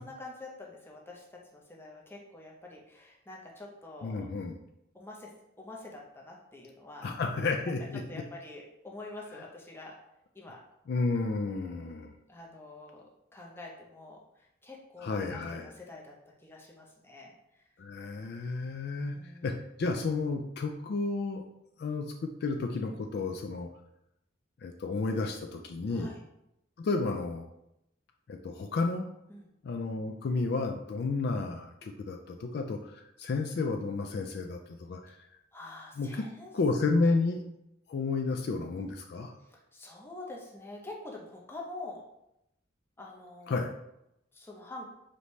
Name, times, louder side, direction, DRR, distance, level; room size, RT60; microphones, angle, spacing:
voice 1, 0.0-4.3 4.9-5.3 5.6-7.1 7.6-7.7 8.1-10.0 10.3-10.6 11.4-13.0 13.3-16.1 16.4-17.7 19.1-19.6 25.9-26.2 29.3-29.5 35.5-36.5 39.4-42.0 43.0-43.6 44.3-44.9, left 2 dB, 10° left, -2 dB, 0.6 m, -46 dB
voice 2, 4.0-4.6 7.0-8.0 10.9-12.1 15.0-15.7 17.8-19.2 19.4-19.5 19.8-21.4 21.8-23.7 24.6-26.1 26.8-27.5 28.3-29.0 29.6-34.6 34.9-35.2 36.0-36.2 36.5-37.4 37.9-39.3 43.5-43.7, left 3 dB, 55° left, 4 dB, 0.3 m, -31 dB
5.0 x 2.7 x 3.1 m, 0.82 s
head